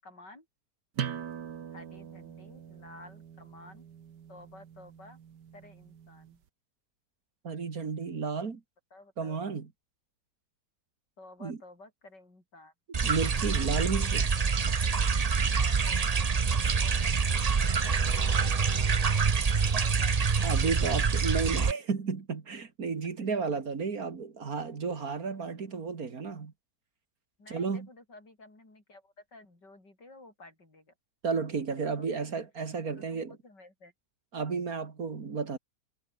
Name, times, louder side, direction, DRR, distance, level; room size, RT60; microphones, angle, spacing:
voice 1, 0.0-0.5 1.7-3.9 4.3-5.2 5.5-6.4 8.9-9.4 11.2-12.7 15.6-16.3 16.6-18.9 19.2-20.6 27.4-30.9 31.3-31.4 32.0-32.3 32.9-33.9, left 2 dB, 80° left, 7.9 m, -53 dB
sound 1, 1.0-6.4, right 8 dB, 80° right, 2.0 m, -42 dB
voice 2, 7.4-8.6 9.2-9.7 11.4-11.6 13.0-14.3 20.4-26.5 27.5-27.9 31.2-33.3 34.3-35.6, right 5 dB, 55° right, 2.5 m, -32 dB
sound 2, 12.9-21.7, right 5 dB, 35° right, 0.6 m, -26 dB
omnidirectional pair, 1.8 m